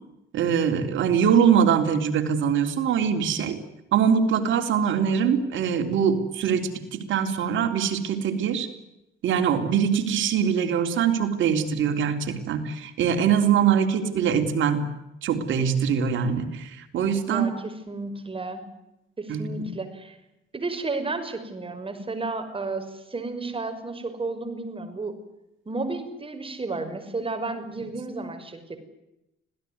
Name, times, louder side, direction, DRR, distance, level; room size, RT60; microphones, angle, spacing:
voice 1, 0.3-3.6 3.9-8.7 9.2-14.8 15.2-17.5 19.3-19.7, right 7 dB, 75° right, 6 dB, 3.8 m, -23 dB
voice 2, 17.3-18.6 19.2-20.2 20.5-25.2 25.7-28.8, right 3 dB, 25° right, 9 dB, 5.9 m, -32 dB
26.0 x 17.5 x 9.7 m, 0.90 s
cardioid pair, 90°, 20 cm